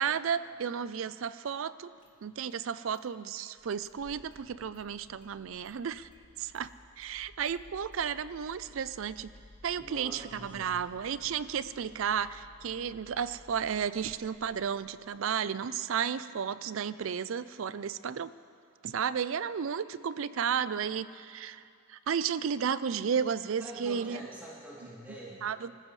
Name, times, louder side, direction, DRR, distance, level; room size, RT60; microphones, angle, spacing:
voice 1, 0.0-1.9 2.2-6.1 6.4-6.7 7.0-9.3 9.6-18.3 18.8-21.6 21.9-24.2 25.4-25.7, right 7 dB, 75° right, 15 dB, 0.4 m, -33 dB
Engine starting, 1.5-1.6 2.0-2.6 2.9-3.0 3.4-15.3, left 1 dB, 40° left, 2.2 m, -57 dB
voice 2, 9.8-10.8 23.6-25.4, right 1 dB, 10° right, -7 dB, 3.0 m, -45 dB
24.5 x 15.0 x 3.2 m, 2.4 s
head